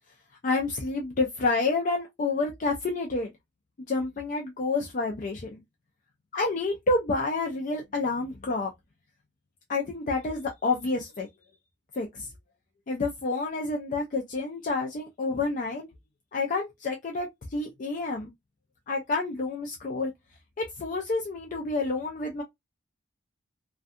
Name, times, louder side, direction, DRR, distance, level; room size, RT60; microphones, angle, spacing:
voice 1, 0.4-3.3 3.9-5.6 6.3-8.7 9.7-11.3 11.9-12.3 12.9-15.9 16.3-18.3 18.9-20.1 20.6-22.4, left 3 dB, 45° left, 0.4 m, -29 dB
2.6 x 2.2 x 2.4 m
head